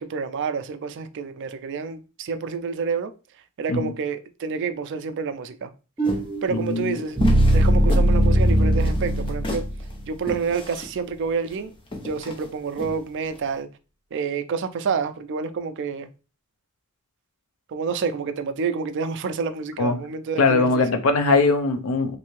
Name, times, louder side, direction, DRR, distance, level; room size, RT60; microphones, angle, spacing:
voice 1, 0.0-3.1 3.6-5.7 6.4-7.2 7.5-9.7 10.1-11.7 12.0-13.7 14.1-16.1 17.7-20.8, right 5 dB, 55° right, 0.4 m, -28 dB
sound 1, 6.0-13.5, left 1 dB, 25° left, 0.6 m, -33 dB
sound 2, 6.0-10.1, equal, 15° right, 0.9 m, -20 dB
voice 2, 6.5-7.0 19.8-20.0 20.4-22.2, left 3 dB, 75° left, 0.5 m, -21 dB
3.3 x 2.7 x 3.1 m
head